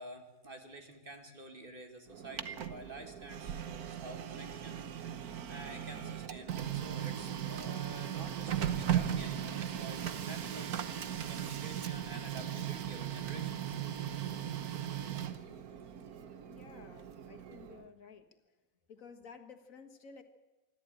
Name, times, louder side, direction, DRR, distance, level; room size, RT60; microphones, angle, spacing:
voice 1, 0.0-4.8 5.5-10.8 11.3-13.8, right 1 dB, 35° right, 5 dB, 2.5 m, -49 dB
Printer, 2.1-17.9, right 10 dB, 90° right, 1.5 m, -38 dB
voice 2, 16.4-18.3 18.9-20.2, left 5 dB, 65° left, 6 dB, 2.0 m, -53 dB
25.0 x 13.5 x 9.0 m, 1.1 s
omnidirectional pair, 1.5 m